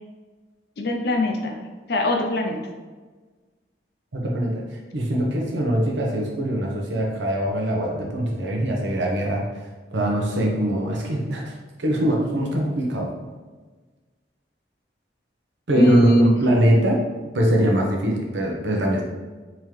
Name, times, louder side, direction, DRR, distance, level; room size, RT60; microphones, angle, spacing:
voice 1, 0.8-1.6 1.9-2.6 15.8-16.4, left 1 dB, 60° left, 2 dB, 0.5 m, -22 dB
voice 2, 4.1-4.6 4.9-9.5 9.9-11.4 11.8-13.1 15.7-17.0 17.3-19.0, equal, 90° right, 0 dB, 0.8 m, -22 dB
3.7 x 3.0 x 3.2 m, 1.3 s
head